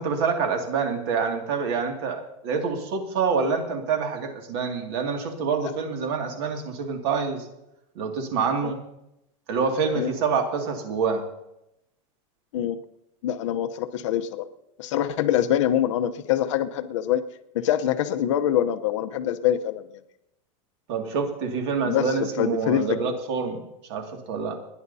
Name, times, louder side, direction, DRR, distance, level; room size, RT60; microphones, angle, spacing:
voice 1, 0.0-7.5 8.0-8.8 9.5-11.2 20.9-23.6 23.9-24.6, right 5 dB, 50° right, 3 dB, 2.3 m, -26 dB
voice 2, 13.2-14.5 14.8-17.2 17.5-19.9 21.8-23.1, left 11 dB, 60° left, 9 dB, 0.9 m, -25 dB
30.0 x 11.0 x 2.8 m, 0.86 s
supercardioid pair, 175°, 18 cm